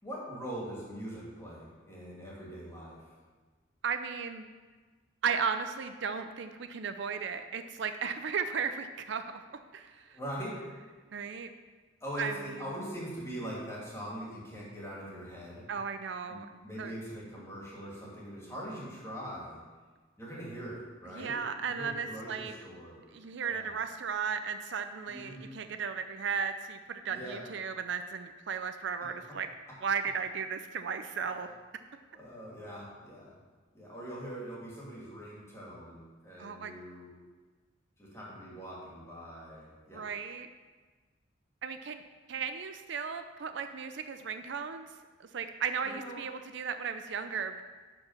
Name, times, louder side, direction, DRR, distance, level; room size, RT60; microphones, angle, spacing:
voice 1, 0.0-3.0 10.1-10.6 12.0-15.7 16.3-19.6 20.2-21.4 21.7-23.1 23.5-23.7 25.1-25.6 27.1-27.4 32.1-33.3 33.7-37.1 38.0-40.1 45.8-46.2, equal, 15° left, -6 dB, 2.7 m, -42 dB
voice 2, 3.8-4.5 5.2-9.4 9.7-10.2 11.1-11.5 12.2-12.3 15.7-16.5 16.8-16.9 21.1-22.5 23.1-29.5 29.8-31.5 36.4-36.7 39.9-40.5 41.6-42.0 42.3-44.9 45.2-47.6, right 6 dB, 60° right, 9 dB, 0.5 m, -35 dB
11.5 x 4.6 x 5.8 m, 1.4 s
head